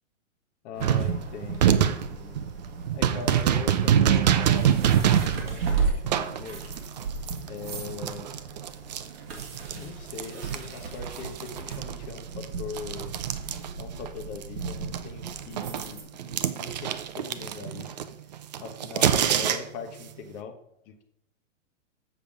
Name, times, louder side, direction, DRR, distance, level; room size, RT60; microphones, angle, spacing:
voice 1, 0.6-2.4 2.9-5.8 6.1-6.6 7.4-8.3 9.7-13.1 13.8-17.9 18.6-20.5 20.9-21.0, left 6 dB, 25° left, 5 dB, 1.0 m, -41 dB
sound 1, 0.7-16.0, right 4 dB, 50° right, 2.1 m, -35 dB
sound 2, 0.8-9.8 10.1-14.1 14.4-19.9, right 9 dB, 35° right, 0.5 m, -26 dB
7.3 x 7.1 x 4.8 m, 0.78 s
hypercardioid pair, 155°, 38 cm